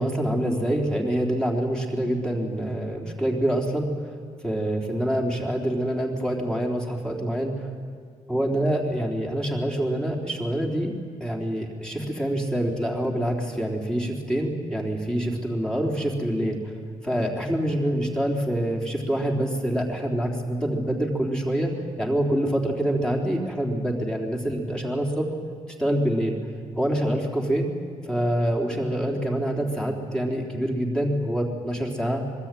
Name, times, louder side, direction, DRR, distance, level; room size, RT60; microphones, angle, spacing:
voice 1, 0.0-3.9 4.4-7.7 8.3-10.9 11.2-16.8 17.0-21.7 22.0-25.3 25.8-26.3 26.8-27.7 28.0-32.2, right 1 dB, 5° left, -1 dB, 3.7 m, -26 dB
25.0 x 22.5 x 9.2 m, 2.1 s
wide cardioid pair, 155°, 13 cm